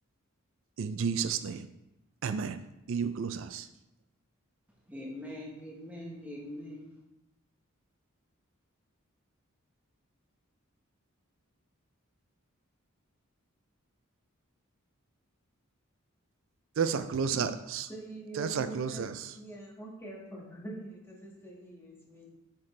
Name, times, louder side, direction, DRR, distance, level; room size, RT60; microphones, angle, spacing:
voice 1, 0.8-1.7 2.2-2.6 2.9-3.7 16.8-17.9 18.4-19.3, right 6 dB, 65° right, 11 dB, 0.4 m, -31 dB
voice 2, 4.8-7.0, left 1 dB, 5° right, -3 dB, 1.2 m, -43 dB
voice 3, 17.9-19.1 19.3-22.3, right 2 dB, 10° left, -3 dB, 1.7 m, -44 dB
8.8 x 5.8 x 3.2 m, 0.93 s
head